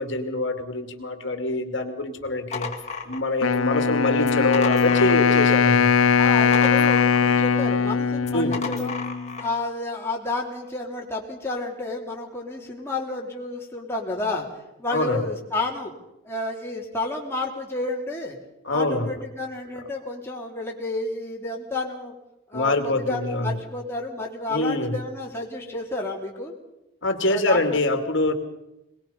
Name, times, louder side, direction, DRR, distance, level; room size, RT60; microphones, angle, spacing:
voice 1, 0.0-2.7 3.1-5.9 8.3-8.6 14.9-15.2 18.6-19.1 22.5-23.6 24.5-25.0 27.0-28.3, left 2 dB, 65° left, 7 dB, 2.4 m, -25 dB
sound 1, 2.2-3.7 4.2-5.7 6.0-7.5 8.2-9.6, left 5 dB, 35° left, 2.0 m, -34 dB
Wind instrument woodwind instrument, 3.4-9.4, left 6 dB, 85° left, 0.7 m, -20 dB
voice 2, 6.2-9.0 9.4-15.9 16.2-18.4 18.7-22.1 22.5-26.5 27.3-27.8, left 2 dB, 10° left, -2 dB, 3.3 m, -31 dB
22.5 x 21.0 x 5.6 m, 0.91 s
head